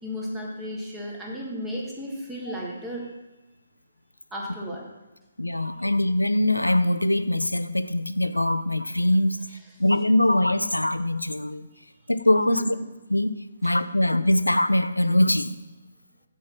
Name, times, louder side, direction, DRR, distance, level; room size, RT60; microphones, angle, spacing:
voice 1, 0.0-3.1 4.3-4.8 5.6-5.7 12.5-12.9 13.6-13.7, equal, 10° right, 1.5 m, -34 dB
voice 2, 5.4-11.7 12.1-12.8 13.1-13.3 13.6-15.6, left 1 dB, 90° left, 0.4 m, -22 dB
6.5 x 4.4 x 6.0 m
figure-of-eight pair, 140°, 0 cm